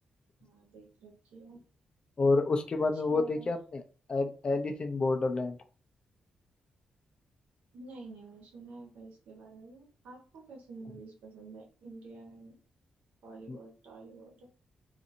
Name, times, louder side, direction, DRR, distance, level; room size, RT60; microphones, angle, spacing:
voice 1, 0.4-1.6 3.1-3.5 7.7-12.6 13.2-14.5, right 3 dB, 90° right, -1 dB, 1.0 m, -49 dB
voice 2, 2.2-3.8 4.1-5.6 13.5-13.6, left 3 dB, 40° left, 6 dB, 0.5 m, -29 dB
2.6 x 2.6 x 2.6 m, 0.39 s
cardioid pair, 85°, 2 cm